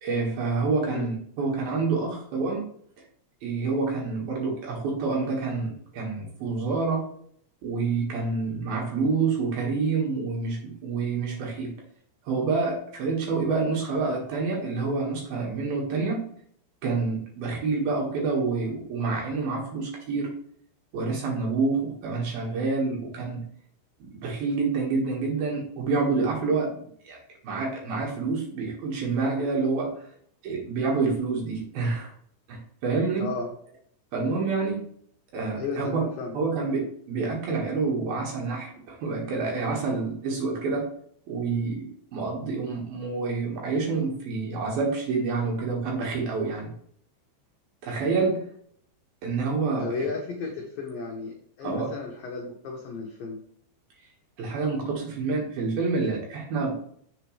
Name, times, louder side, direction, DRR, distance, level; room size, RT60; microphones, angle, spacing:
voice 1, 0.0-2.7 3.4-7.0 7.6-11.7 12.3-16.2 16.8-20.3 20.9-23.4 24.0-27.2 27.4-29.9 30.4-32.1 32.5-33.3 34.1-34.8 35.3-36.1 36.3-40.9 41.3-46.7 47.8-48.5 49.2-49.9 51.6-51.9 54.4-56.7, right 4 dB, 60° right, -2 dB, 2.9 m, -27 dB
voice 2, 33.2-33.6 35.6-36.4 49.8-53.4, left 4 dB, 85° left, 0 dB, 2.0 m, -34 dB
7.8 x 6.7 x 3.2 m, 0.63 s
omnidirectional pair, 5.8 m